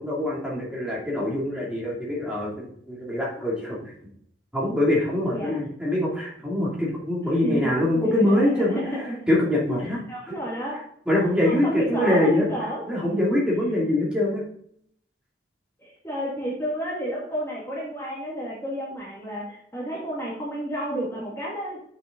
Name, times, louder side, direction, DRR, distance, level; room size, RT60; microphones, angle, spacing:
voice 1, 0.0-3.8 4.5-8.8 9.3-10.0 11.1-12.4 12.9-14.4, left 1 dB, 5° right, -5 dB, 2.6 m, -24 dB
voice 2, 7.4-9.3 9.8-10.8 11.4-13.3 15.8-21.9, right 1 dB, 15° left, -5 dB, 2.1 m, -31 dB
7.1 x 6.4 x 3.9 m, 0.65 s
head